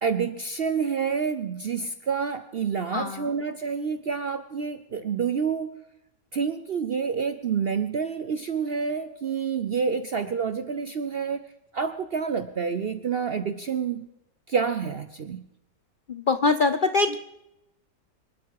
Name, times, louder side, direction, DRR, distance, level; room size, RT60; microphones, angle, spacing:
voice 1, 0.0-5.7 6.3-11.4 11.7-14.1 14.5-15.4, right 6 dB, 65° right, 11 dB, 0.5 m, -28 dB
voice 2, 2.9-3.3 16.1-17.2, left 3 dB, 90° left, 10 dB, 0.4 m, -23 dB
25.0 x 12.0 x 4.7 m, 0.85 s
omnidirectional pair, 1.8 m